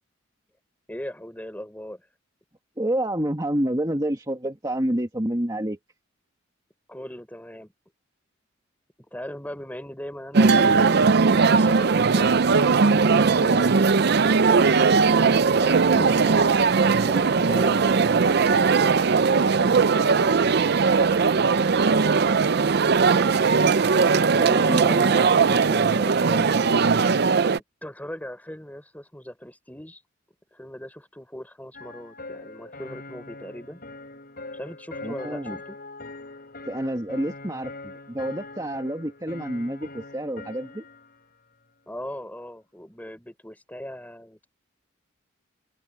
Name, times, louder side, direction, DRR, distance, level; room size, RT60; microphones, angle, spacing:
voice 1, 0.9-2.1 6.9-7.7 9.1-11.1 11.4-12.3 13.0-14.6 15.6-16.7 17.0-19.4 24.4-26.1 27.8-30.0 30.5-33.8 34.5-35.8 41.9-44.5, equal, 10° left, 4.3 m, -39 dB
voice 2, 2.8-5.8 13.3-13.7 15.8-16.1 24.4-26.9 35.0-35.6 36.7-40.8, right 1 dB, 20° right, 2.1 m, -29 dB
sound 1, 10.3-27.6, right 5 dB, 50° right, 0.5 m, -19 dB
sound 2, 31.7-41.2, left 2 dB, 45° left, 6.7 m, -42 dB
open air
head